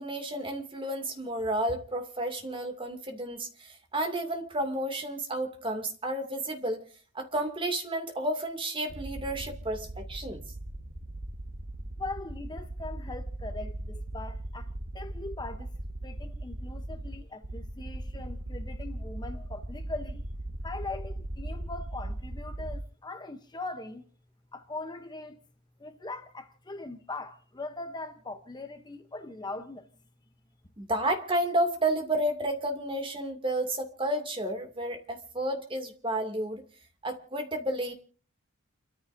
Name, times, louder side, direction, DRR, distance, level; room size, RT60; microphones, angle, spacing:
voice 1, 0.0-6.8 7.1-10.4 30.8-36.6 37.0-37.9, right 1 dB, 25° right, 2.5 m, -31 dB
sound 1, 8.9-22.8, right 1 dB, 55° right, 1.5 m, -38 dB
voice 2, 12.0-15.7 16.0-20.2 20.6-24.1 24.5-25.4 25.8-29.9, left 2 dB, 20° left, 0.8 m, -41 dB
29.5 x 14.0 x 2.7 m
head